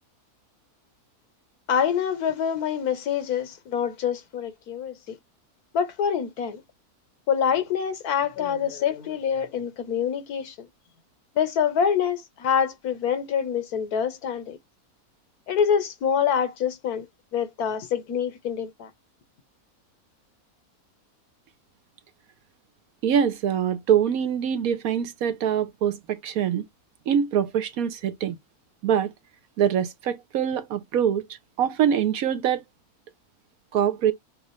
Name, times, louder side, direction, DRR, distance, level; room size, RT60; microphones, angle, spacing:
voice 1, 1.7-5.2 5.7-6.6 7.3-10.7 11.3-14.6 15.5-18.9, left 7 dB, 80° left, 1.4 m, -26 dB
voice 2, 23.0-26.6 27.1-28.4 28.8-29.1 29.6-31.2 31.6-32.6 33.7-34.1, right 9 dB, 70° right, 1.1 m, -24 dB
6.5 x 2.4 x 3.0 m
omnidirectional pair, 1.6 m